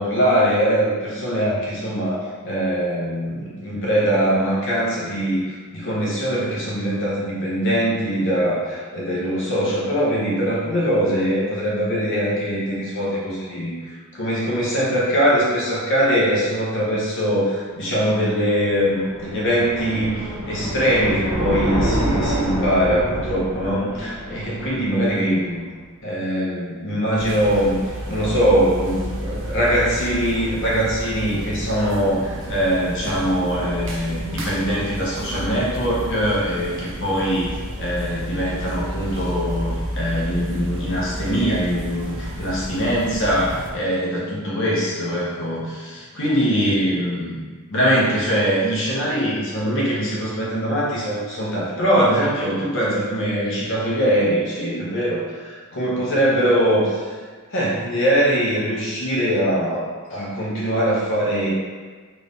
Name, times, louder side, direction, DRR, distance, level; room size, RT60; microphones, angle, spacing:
voice 1, 0.0-25.6 26.0-27.8 28.1-47.3 47.7-57.0 57.5-61.5, equal, 60° left, -6 dB, 1.0 m, -22 dB
sound 1, 18.3-25.4, right 1 dB, 80° right, 1.2 m, -27 dB
sound 2, 27.2-43.7, equal, 60° right, 0.6 m, -31 dB
3.2 x 2.6 x 3.5 m, 1.5 s
head